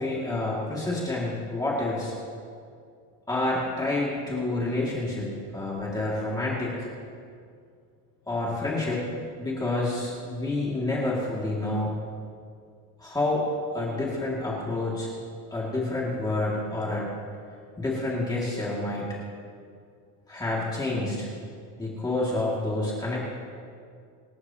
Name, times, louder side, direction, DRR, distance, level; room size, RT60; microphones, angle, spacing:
voice 1, 0.0-2.1 3.3-6.9 8.3-9.1 9.4-11.9 13.0-13.5 13.7-15.1 15.5-17.1 17.8-19.2 20.3-21.3 21.8-23.2, left 2 dB, 10° left, -5 dB, 2.2 m, -28 dB
25.5 x 13.0 x 2.9 m, 2.3 s
cardioid pair, 175°, 36 cm